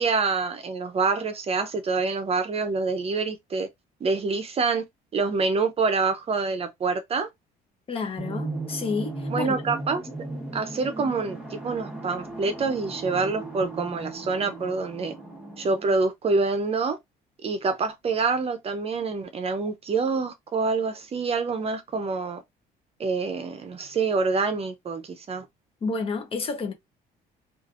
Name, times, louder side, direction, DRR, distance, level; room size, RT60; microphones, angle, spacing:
voice 1, 0.0-3.7 4.0-4.8 5.1-7.3 9.3-10.0 10.5-15.1 15.6-17.0 17.4-22.4 23.0-25.5, right 4 dB, 35° right, 0.6 m, -26 dB
voice 2, 7.9-9.6 25.8-26.7, left 4 dB, 35° left, 0.8 m, -30 dB
sound 1, 8.2-16.0, right 2 dB, 5° right, 1.2 m, -36 dB
3.2 x 2.4 x 2.4 m
cardioid pair, 110°, 17 cm